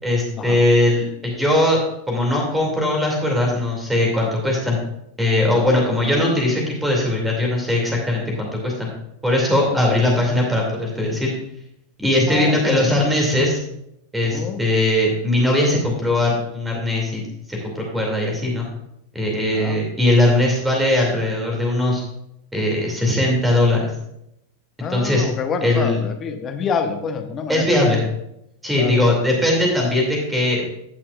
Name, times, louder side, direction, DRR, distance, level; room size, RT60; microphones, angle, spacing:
voice 1, 0.0-1.8 2.1-4.8 5.2-8.9 9.2-11.3 12.0-13.6 14.1-17.2 17.5-18.7 19.1-22.0 22.5-23.9 24.9-25.3 25.6-26.0 27.5-28.0 28.6-30.6, left 1 dB, 5° right, -1 dB, 2.5 m, -20 dB
voice 2, 9.7-10.0 12.3-13.0 14.2-14.6 19.5-19.8 24.8-28.1 28.7-29.1, left 6 dB, 25° left, 5 dB, 1.1 m, -27 dB
16.0 x 5.9 x 2.5 m, 0.79 s
figure-of-eight pair, 90°, 0 cm